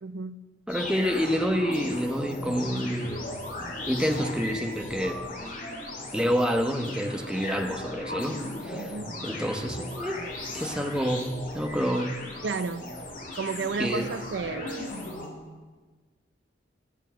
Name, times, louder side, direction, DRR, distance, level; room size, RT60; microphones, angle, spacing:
voice 1, 0.0-0.4 8.8-9.1 12.4-12.8 13.3-15.0, right 4 dB, 80° right, 13 dB, 0.5 m, -32 dB
sound 1, 0.7-15.3, left 1 dB, 50° left, 2.8 m, -37 dB
voice 2, 0.7-3.2 3.9-5.2 6.1-8.9 9.2-10.2 10.5-12.1 13.8-14.1, equal, 5° right, 3 dB, 1.0 m, -28 dB
13.5 x 8.1 x 7.6 m, 1.3 s
head